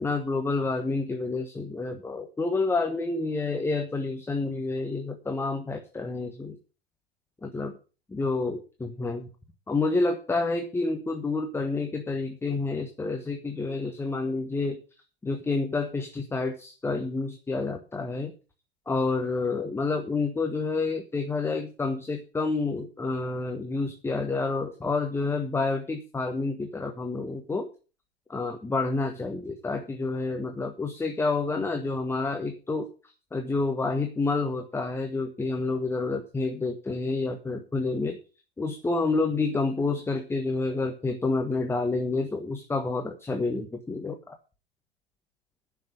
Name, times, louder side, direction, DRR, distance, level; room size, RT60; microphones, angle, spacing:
voice 1, 0.0-6.6 7.4-7.7 8.1-9.3 9.7-14.8 15.2-18.3 18.9-27.7 28.3-32.9 33.3-38.2 38.6-44.4, left 3 dB, 10° left, 5 dB, 1.3 m, -29 dB
10.5 x 6.0 x 8.6 m, 0.34 s
figure-of-eight pair, 90°, 31 cm